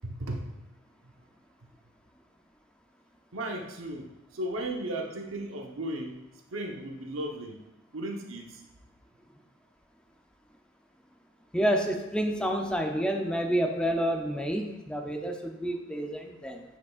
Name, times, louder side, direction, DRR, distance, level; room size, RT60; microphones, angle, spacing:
voice 1, 0.0-0.5 1.0-1.1 3.3-6.2 6.5-7.6 7.9-8.6, right 1 dB, 70° right, 2 dB, 0.9 m, -35 dB
voice 2, 11.5-16.6, equal, 5° left, 3 dB, 0.5 m, -29 dB
9.7 x 5.0 x 2.4 m, 0.97 s
head